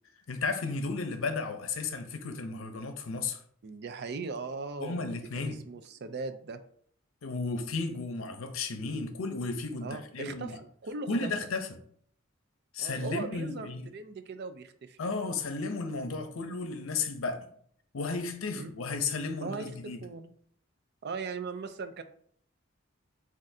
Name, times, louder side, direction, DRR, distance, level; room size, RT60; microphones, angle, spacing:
voice 1, 0.3-3.4 4.8-5.6 7.2-10.6 11.1-11.7 12.7-13.9 15.0-17.5 17.9-20.0, left 3 dB, 75° left, 0.6 m, -34 dB
voice 2, 3.6-6.6 9.8-11.3 12.8-15.0 18.5-18.7 19.4-20.3 21.0-22.0, right 4 dB, 55° right, 0.5 m, -39 dB
7.4 x 2.5 x 2.7 m
head